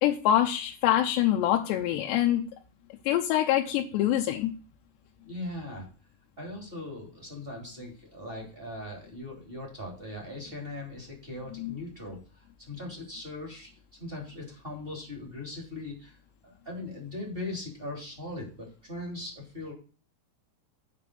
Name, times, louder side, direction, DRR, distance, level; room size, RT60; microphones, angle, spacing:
voice 1, 0.0-2.4 3.1-4.5 11.6-11.7, left 12 dB, 85° left, 2 dB, 3.0 m, -25 dB
voice 2, 5.3-5.9 6.4-13.7 14.0-16.2 16.4-19.7, left 2 dB, 15° right, -1 dB, 2.7 m, -39 dB
8.5 x 5.1 x 6.7 m, 0.37 s
omnidirectional pair, 4.9 m